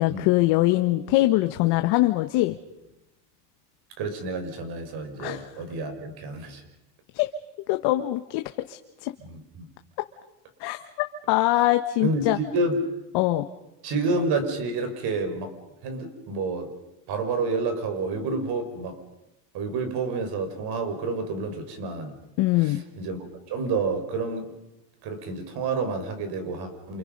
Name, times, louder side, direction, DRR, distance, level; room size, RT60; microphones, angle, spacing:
voice 1, 0.0-2.6 5.2-5.5 7.1-7.3 7.7-8.4 8.7-9.1 10.6-12.4 13.1-13.5 22.4-22.8, left 17 dB, 60° left, 7 dB, 1.4 m, -23 dB
voice 2, 4.0-6.6 9.2-9.7 12.0-12.8 13.8-15.5 15.8-16.7 17.1-19.0 19.5-22.2 22.6-23.2 23.5-24.5 25.0-27.0, right 3 dB, 50° right, 7 dB, 5.8 m, -29 dB
29.0 x 28.0 x 5.4 m, 0.93 s
supercardioid pair, 125°, 49 cm